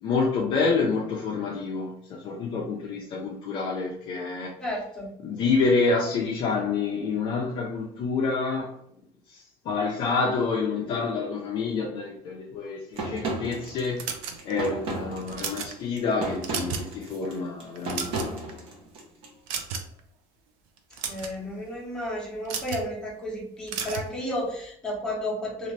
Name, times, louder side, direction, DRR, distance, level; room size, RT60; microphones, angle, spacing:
voice 1, 0.0-4.5 5.2-8.7 9.3-14.1 14.4-18.6, left 4 dB, 40° left, 0.4 m, -28 dB
voice 2, 4.6-5.1 21.1-25.7, left 1 dB, 5° left, 0.8 m, -32 dB
sound 1, 13.0-19.3, right 2 dB, 45° right, 0.7 m, -34 dB
sound 2, 14.0-14.7 15.2-15.7 16.2-16.9 17.2-17.4 17.8-18.5 19.5-20.0 20.8-21.3 22.4-22.9 23.7-24.1, right 6 dB, 80° right, 0.5 m, -33 dB
2.8 x 2.4 x 3.2 m
cardioid pair, 175°, 13 cm